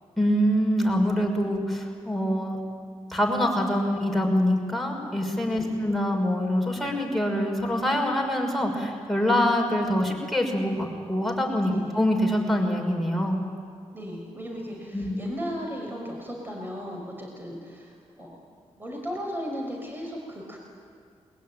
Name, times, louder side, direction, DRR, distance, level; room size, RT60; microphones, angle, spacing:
voice 1, 0.2-2.6 3.1-13.4 14.9-15.2, equal, ahead, 0 dB, 6.0 m, -25 dB
voice 2, 5.5-5.8 11.6-11.9 13.9-18.4 18.8-20.6, equal, 15° right, -1 dB, 6.1 m, -36 dB
21.5 x 21.5 x 9.3 m, 2.2 s
cardioid pair, 60°, 12 cm